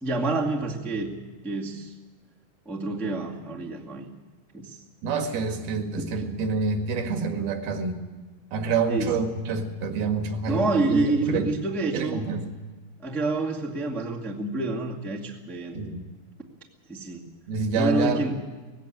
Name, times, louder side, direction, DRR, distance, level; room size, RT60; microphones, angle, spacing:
voice 1, 0.0-1.2 1.4-1.9 2.6-4.1 4.5-4.8 6.0-6.1 8.9-9.1 10.5-12.2 13.0-15.8 16.9-17.3 17.7-18.4, right 2 dB, ahead, -2 dB, 0.7 m, -28 dB
voice 2, 5.0-8.0 8.5-11.5 11.9-12.5 15.7-16.0 17.5-18.2, right 4 dB, 75° right, 5 dB, 3.7 m, -27 dB
18.0 x 16.0 x 9.1 m, 1.3 s
omnidirectional pair, 4.4 m